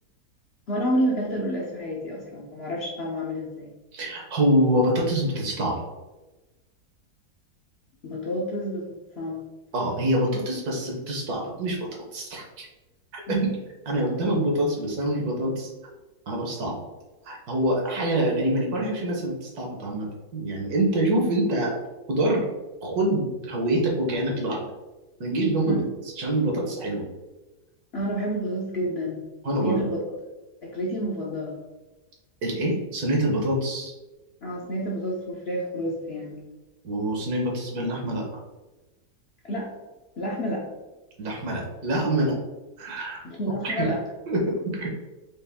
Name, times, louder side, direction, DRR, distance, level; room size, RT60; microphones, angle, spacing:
voice 1, 0.7-3.7 8.0-9.4 13.3-13.5 25.6-25.9 27.9-29.2 29.6-30.0 30.6-31.6 34.4-36.4 39.4-39.7 40.2-40.7 43.2-44.0, equal, 50° left, -4 dB, 0.8 m, -29 dB
voice 2, 3.9-5.8 9.7-12.7 13.1-13.4 13.9-15.7 16.3-16.8 17.3-20.1 20.3-21.8 22.1-22.5 22.8-24.7 25.2-25.8 26.2-27.0 29.4-29.8 32.4-33.9 36.8-38.4 41.2-42.4 42.8-43.2 43.6-43.9 44.3-44.9, right 1 dB, 65° right, -1 dB, 1.5 m, -25 dB
5.2 x 2.5 x 3.5 m, 1.1 s
omnidirectional pair, 1.8 m